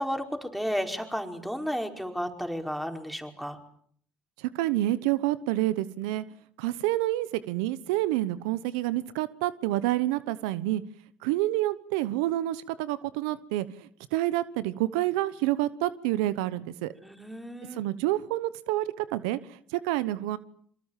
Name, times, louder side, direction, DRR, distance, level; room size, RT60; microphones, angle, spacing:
voice 1, 0.0-3.6 17.0-17.8, equal, ahead, 5 dB, 5.2 m, -33 dB
voice 2, 4.4-6.2 6.6-10.8 11.2-16.9 17.7-20.4, right 15 dB, 85° right, 16 dB, 1.0 m, -28 dB
27.0 x 24.0 x 7.5 m, 0.62 s
supercardioid pair, 75°, 4 cm